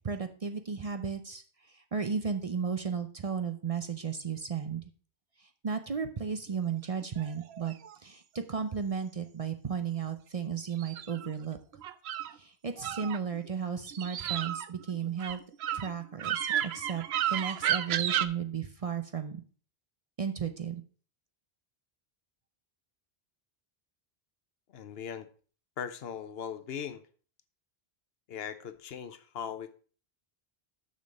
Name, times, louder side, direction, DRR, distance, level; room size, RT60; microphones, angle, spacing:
voice 1, 0.0-4.9 5.4-7.7 8.0-11.6 12.3-15.4 15.7-19.4 20.2-20.8, right 6 dB, 40° right, 8 dB, 0.6 m, -34 dB
sound 1, 7.0-8.0 10.7-12.3 12.8-13.5 13.8-18.3, right 11 dB, 85° right, 0.8 m, -32 dB
voice 2, 24.7-25.3 25.8-27.0 28.3-29.7, left 8 dB, 75° left, 12 dB, 1.0 m, -39 dB
6.6 x 6.3 x 5.2 m, 0.41 s
omnidirectional pair, 1.0 m